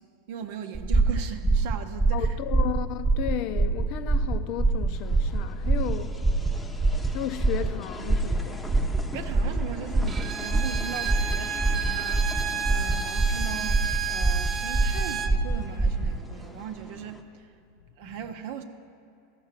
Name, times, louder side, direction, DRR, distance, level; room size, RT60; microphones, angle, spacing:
voice 1, 0.0-2.4 9.1-17.5 18.0-18.6, right 7 dB, 65° right, 0.7 m, -38 dB
sound 1, 0.7-16.2, right 3 dB, 10° right, 1.2 m, -25 dB
voice 2, 2.1-9.5 18.0-18.3, left 11 dB, 55° left, 0.5 m, -35 dB
sound 2, 5.0-17.2, left 1 dB, 10° left, 0.8 m, -44 dB
Bowed string instrument, 10.1-15.4, right 6 dB, 25° right, 0.6 m, -32 dB
13.5 x 5.8 x 5.9 m
hypercardioid pair, 115°, 0 cm